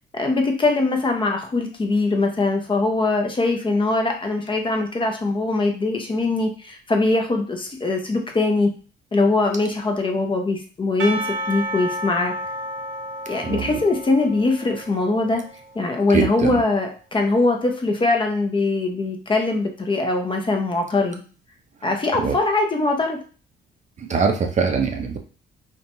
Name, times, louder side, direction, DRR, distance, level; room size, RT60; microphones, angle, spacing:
voice 1, 0.1-8.7 9.1-12.3 13.3-15.4 15.7-21.2 21.8-23.2, left 3 dB, 25° left, 3 dB, 0.6 m, -22 dB
Percussion / Church bell, 11.0-16.1, right 1 dB, 80° right, 0.6 m, -32 dB
voice 2, 13.4-13.8 16.1-16.6 22.2-22.4 24.0-25.2, right 5 dB, 35° right, 4 dB, 0.4 m, -22 dB
2.8 x 2.2 x 2.6 m, 0.38 s
cardioid pair, 90°, 20 cm